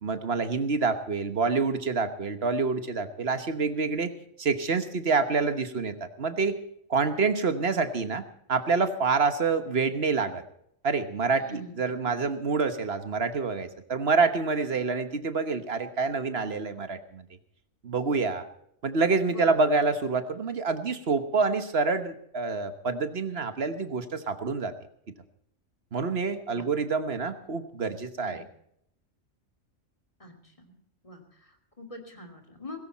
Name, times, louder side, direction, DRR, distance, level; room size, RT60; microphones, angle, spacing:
voice 1, 0.0-4.1 4.4-6.6 6.9-10.4 10.8-17.2 17.8-18.4 18.8-24.7 25.9-28.4, right 4 dB, 50° right, 10 dB, 1.4 m, -27 dB
voice 2, 11.3-12.0 19.3-19.7 26.5-26.7 28.2-28.4 30.2-30.7 31.0-32.8, left 1 dB, 25° left, 3 dB, 2.9 m, -44 dB
18.0 x 16.0 x 4.2 m, 0.72 s
omnidirectional pair, 1.4 m